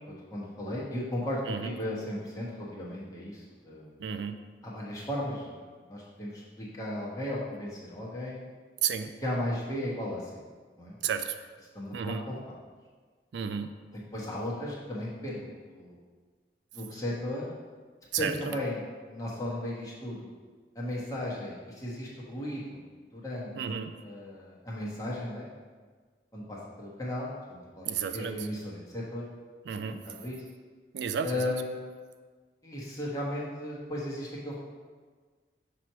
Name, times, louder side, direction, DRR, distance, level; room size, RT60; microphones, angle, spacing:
voice 1, 0.1-3.9 4.6-8.5 9.2-10.4 10.8-10.9 11.7-12.6 13.9-16.0 16.7-17.4 18.2-20.3 20.7-22.8 23.1-25.5 26.3-29.2 29.9-30.4 31.2-31.8 32.6-34.6, left 1 dB, 20° left, -6 dB, 1.2 m, -36 dB
voice 2, 4.0-4.4 8.8-9.1 11.0-11.4 11.9-12.3 13.3-13.7 18.1-18.6 23.6-23.9 27.9-28.4 29.7-30.0 30.9-31.5, right 7 dB, 80° right, 9 dB, 0.3 m, -32 dB
6.0 x 3.0 x 5.5 m, 1.5 s
head